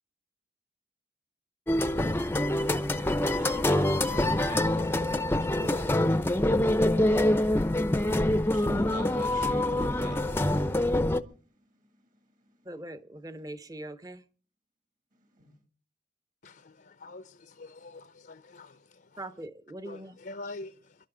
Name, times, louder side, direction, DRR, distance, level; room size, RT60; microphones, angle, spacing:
sound 1, 1.7-11.2, left 1 dB, 15° left, 0.6 m, -25 dB
voice 1, 3.3-6.0 8.5-10.3 15.4-15.5, right 1 dB, 45° right, 2.4 m, -44 dB
voice 2, 12.6-14.2 19.2-20.2, right 1 dB, 20° right, 0.8 m, -42 dB
voice 3, 16.4-19.2 19.8-21.0, left 2 dB, 55° left, 0.7 m, -45 dB
27.5 x 12.0 x 3.8 m
head